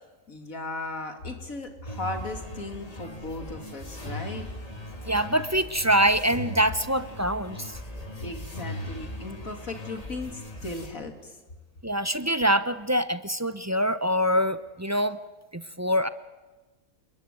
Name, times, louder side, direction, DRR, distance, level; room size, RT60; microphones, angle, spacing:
voice 1, 0.3-4.5 8.2-11.3, left 2 dB, 80° left, 5 dB, 3.2 m, -36 dB
sound 1, 1.9-10.9, left 1 dB, 25° left, 2.9 m, -39 dB
voice 2, 5.1-7.8 11.8-15.2 15.5-16.1, equal, 15° right, 12 dB, 0.6 m, -25 dB
29.0 x 21.0 x 9.2 m, 1.2 s
omnidirectional pair, 1.4 m